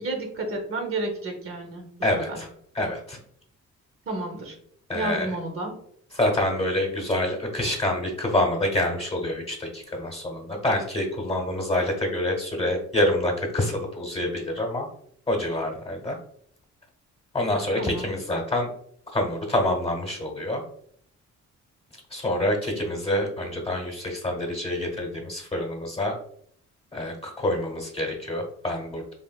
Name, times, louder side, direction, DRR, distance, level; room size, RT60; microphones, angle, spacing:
voice 1, 0.0-1.8 2.3-2.4 4.1-4.6 4.9-5.8 17.8-18.1, right 2 dB, 45° right, 3 dB, 0.7 m, -31 dB
voice 2, 2.0-2.5 2.7-3.2 4.9-5.4 6.1-14.9 15.3-16.2 17.3-18.7 19.1-20.6 22.1-26.1 26.9-29.1, left 1 dB, 20° left, 1 dB, 0.9 m, -27 dB
3.3 x 2.5 x 2.2 m, 0.66 s
cardioid pair, 90°, 30 cm